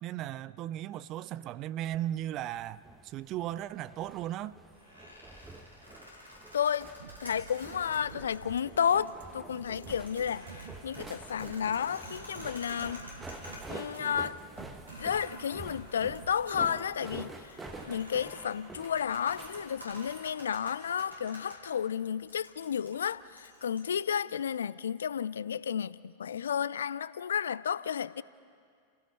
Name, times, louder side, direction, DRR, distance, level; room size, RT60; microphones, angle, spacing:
voice 1, 0.0-4.6, right 12 dB, 35° right, 0.5 m, -36 dB
sound 1, 2.3-20.2, right 2 dB, 10° right, 1.5 m, -48 dB
sound 2, 4.7-8.0 8.3-8.4 8.9-9.2 9.6-14.1 14.4-14.5 14.9-21.6 22.3-23.8, left 1 dB, 85° right, 5.6 m, -50 dB
voice 2, 6.5-6.9 7.2-13.0 13.7-14.4 15.0-17.6 17.9-28.2, left 8 dB, 65° left, 0.5 m, -32 dB
sound 3, 7.0-17.1, right 6 dB, 65° right, 1.2 m, -50 dB
29.5 x 17.0 x 5.4 m
figure-of-eight pair, 90°, 0 cm